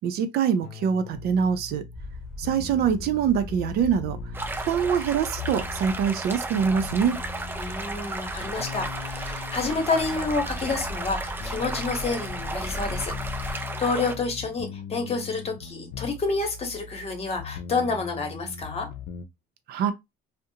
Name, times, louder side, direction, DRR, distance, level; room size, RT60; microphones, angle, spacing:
voice 1, 0.0-1.8 2.4-4.2 4.7-7.2 19.7-19.9, right 7 dB, 70° right, 0.5 m, -24 dB
sound 1, 0.6-19.3, left 6 dB, 80° left, 0.4 m, -40 dB
sound 2, 1.9-13.5, left 2 dB, 5° left, 0.9 m, -39 dB
sound 3, 4.3-14.2, right 2 dB, 15° right, 0.4 m, -34 dB
voice 2, 7.6-18.9, left 3 dB, 35° left, 1.0 m, -29 dB
2.5 x 2.1 x 2.7 m
cardioid pair, 110°, 17 cm